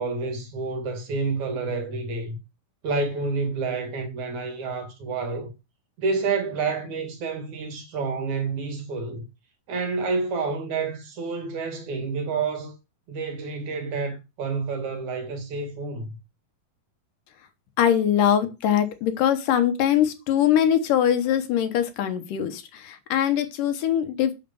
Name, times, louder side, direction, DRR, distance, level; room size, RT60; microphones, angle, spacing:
voice 1, 0.0-2.4 2.8-5.5 6.0-9.2 9.7-12.7 13.1-16.1, right 4 dB, 60° right, 3.2 m, -29 dB
voice 2, 17.8-24.3, left 10 dB, 70° left, 2.6 m, -22 dB
8.8 x 4.9 x 6.9 m
omnidirectional pair, 4.1 m